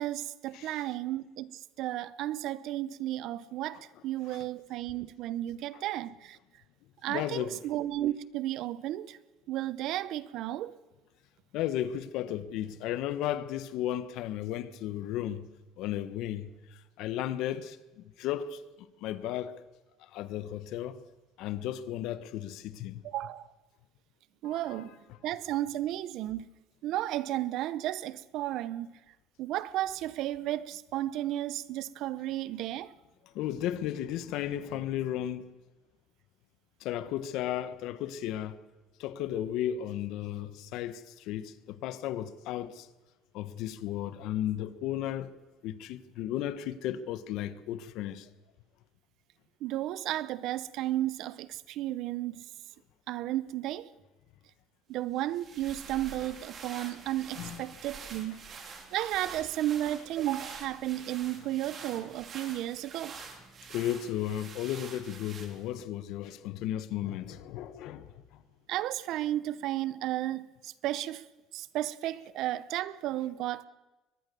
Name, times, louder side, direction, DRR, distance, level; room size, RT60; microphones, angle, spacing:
voice 1, 0.0-6.4 7.0-9.2 9.5-10.8 23.0-23.4 24.4-25.0 25.2-26.5 26.8-28.9 29.4-32.9 49.6-52.4 53.1-53.9 54.9-58.4 58.9-63.1 68.7-71.2 71.5-73.7, right 14 dB, 60° right, 0.8 m, -33 dB
voice 2, 7.1-7.6 11.5-15.5 15.8-16.5 17.0-18.6 19.0-19.6 20.1-21.0 21.4-23.0 24.4-24.9 33.3-35.4 36.8-38.6 39.0-42.9 43.3-45.3 45.6-48.3 57.4-57.6 63.7-68.1, left 11 dB, 70° left, 1.3 m, -34 dB
sound 1, 55.1-65.8, right 5 dB, 35° right, 3.5 m, -47 dB
23.0 x 20.0 x 7.0 m
cardioid pair, 145°, 0 cm